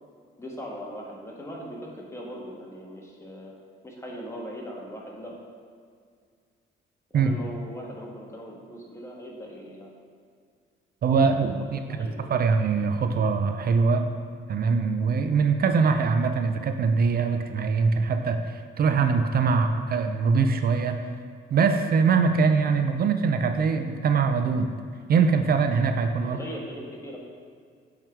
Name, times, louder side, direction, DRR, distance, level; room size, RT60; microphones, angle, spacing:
voice 1, 0.4-3.5 3.8-5.4 7.1-9.9 11.6-12.3 26.2-27.2, equal, 15° left, -3 dB, 1.5 m, -39 dB
voice 2, 11.0-14.1 14.5-21.0 21.5-24.7 25.1-26.4, right 5 dB, 50° right, 7 dB, 0.5 m, -23 dB
7.7 x 3.8 x 4.5 m, 2.1 s
cardioid pair, 90°, 20 cm